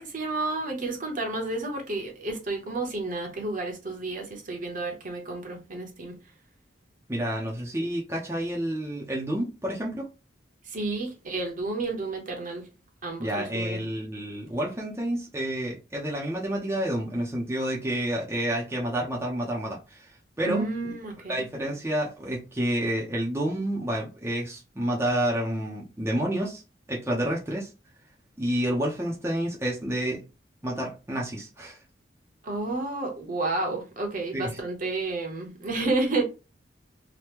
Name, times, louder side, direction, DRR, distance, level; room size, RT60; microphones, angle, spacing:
voice 1, 0.0-6.2 10.7-12.7 13.0-13.8 20.4-21.4 32.4-36.2, right 2 dB, 45° right, 0.9 m, -31 dB
voice 2, 7.1-10.1 13.2-20.1 20.4-20.7 21.3-26.6 26.9-27.7 28.4-30.2 30.6-31.8 34.3-34.6, right 1 dB, 15° right, 0.6 m, -29 dB
2.9 x 2.2 x 3.4 m
head